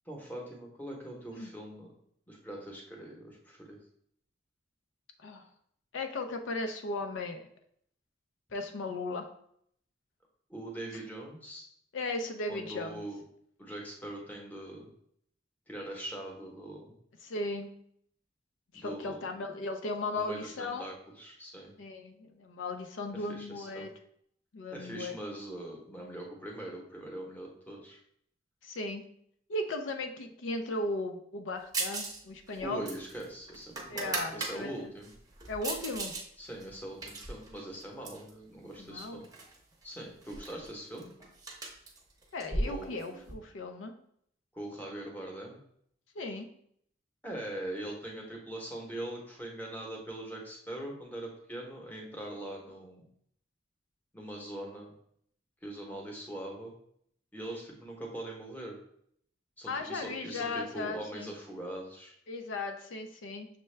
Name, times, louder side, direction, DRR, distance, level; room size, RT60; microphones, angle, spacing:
voice 1, 0.1-1.9 2.3-3.8 10.5-11.7 12.5-13.2 13.6-14.9 15.7-17.0 18.7-19.2 20.1-21.7 23.1-23.9 24.7-28.0 32.6-35.1 36.4-39.3 39.8-41.1 42.7-42.9 44.5-45.6 47.2-53.0 54.1-54.9 55.6-56.7 57.3-58.8 59.6-62.2, right 1 dB, 10° left, -1 dB, 0.8 m, -42 dB
voice 2, 5.9-7.5 8.5-9.3 11.9-13.0 17.2-17.7 18.7-20.9 21.8-23.9 24.5-25.2 28.6-29.0 29.5-32.9 33.9-34.7 35.5-36.1 38.8-39.2 42.3-43.9 46.2-46.5 59.7-61.3 62.3-63.5, left 2 dB, 80° left, 6 dB, 0.5 m, -36 dB
sound 1, 31.7-32.2 32.5-34.5 35.0-36.2 36.6-38.3 39.0-39.6 39.8-39.9 40.2-43.3, right 2 dB, 20° right, 0.7 m, -37 dB
6.4 x 2.2 x 3.2 m, 0.68 s
head